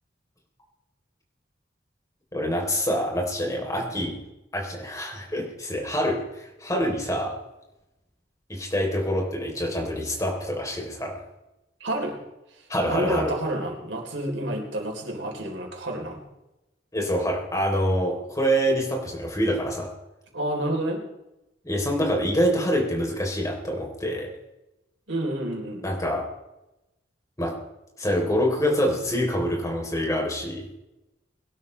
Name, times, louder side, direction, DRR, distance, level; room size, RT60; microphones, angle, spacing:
voice 1, 2.3-4.2 4.5-7.4 8.5-11.2 12.7-13.3 16.9-19.9 21.6-24.3 25.8-26.2 27.4-27.6 28.0-30.6, equal, 20° left, 0 dB, 3.5 m, -26 dB
voice 2, 11.8-12.2 12.8-16.2 20.3-21.0 25.1-25.8, right 1 dB, 90° right, 1 dB, 3.7 m, -29 dB
22.0 x 12.5 x 3.3 m, 0.96 s
head